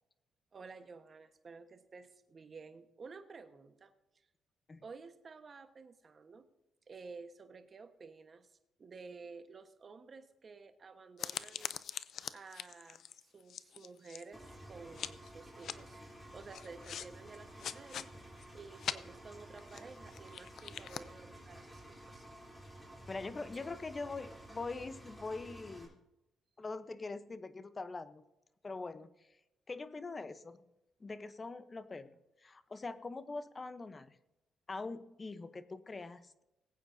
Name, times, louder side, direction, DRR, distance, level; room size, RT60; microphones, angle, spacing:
voice 1, 0.5-3.9 4.8-6.5 6.9-8.5 8.8-11.7 12.3-16.0 16.3-22.3, right 4 dB, 40° right, 8 dB, 1.2 m, -52 dB
sound 1, 11.2-14.5 15.0-15.3 15.6-15.8 16.5-17.1 17.3-18.1 18.4-18.5 18.8-19.0 19.6-21.0, left 9 dB, 65° left, 0.5 m, -42 dB
Engine, 14.3-25.9, right 1 dB, 5° left, 3.3 m, -52 dB
voice 2, 23.1-26.0 26.6-28.2 28.6-29.1 29.7-30.6 31.0-32.1 32.4-34.2 34.7-36.4, left 3 dB, 30° left, 13 dB, 0.8 m, -43 dB
20.0 x 8.9 x 2.7 m, 0.93 s
cardioid pair, 90°, 0 cm